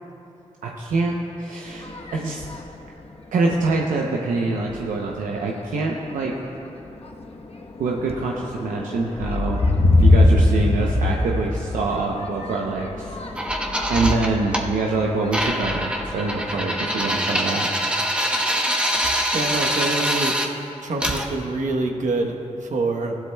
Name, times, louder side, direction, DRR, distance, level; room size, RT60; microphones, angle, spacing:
voice 1, 0.6-2.5 3.3-6.3 7.8-9.6 10.0-13.2 13.7-17.7, right 3 dB, 90° right, -1 dB, 0.7 m, -25 dB
sound 1, 1.7-2.7 3.4-3.5 4.0-4.3 4.6-5.2 5.9-6.1 6.5-17.2, left 2 dB, 50° left, 1.1 m, -23 dB
sound 2, 13.4-14.7 15.3-20.5 21.0-21.3, equal, 10° right, 1.1 m, -24 dB
voice 2, 19.3-20.3 20.8-23.2, right 2 dB, 70° right, 2 dB, 1.0 m, -25 dB
14.5 x 11.5 x 2.2 m, 3.0 s
cardioid pair, 45°, 13 cm